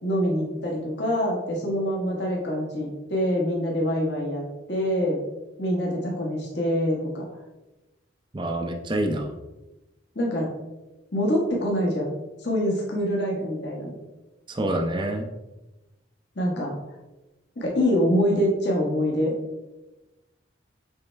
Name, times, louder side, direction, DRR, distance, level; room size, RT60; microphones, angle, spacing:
voice 1, 0.0-4.4 4.7-5.2 5.6-7.3 10.1-10.5 11.1-12.1 12.4-13.9 16.3-16.7 17.6-19.3, equal, 60° left, -2 dB, 1.4 m, -25 dB
voice 2, 8.3-9.3 14.5-15.3, right 1 dB, 25° right, 4 dB, 0.5 m, -27 dB
7.1 x 4.4 x 3.4 m, 1.0 s
head